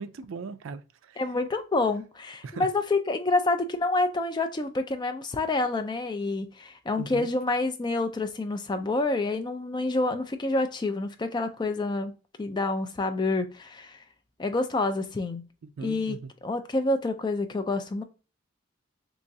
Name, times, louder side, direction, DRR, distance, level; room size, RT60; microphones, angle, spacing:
voice 1, 0.0-1.2 2.4-2.7 7.0-7.3 15.6-16.3, right 4 dB, 70° right, 0.4 m, -39 dB
voice 2, 1.2-12.1 12.4-14.0 14.4-15.4 15.8-16.2 16.4-18.0, left 2 dB, 20° left, 0.3 m, -28 dB
3.5 x 3.0 x 2.7 m
head